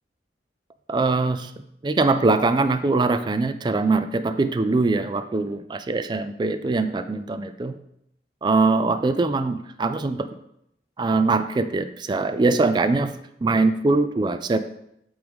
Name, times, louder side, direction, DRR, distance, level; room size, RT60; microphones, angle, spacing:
voice 1, 0.9-1.5 1.8-7.8 8.4-10.3 11.0-13.1 13.4-14.6, right 3 dB, 25° right, 11 dB, 0.3 m, -22 dB
7.9 x 3.7 x 3.5 m, 0.77 s
head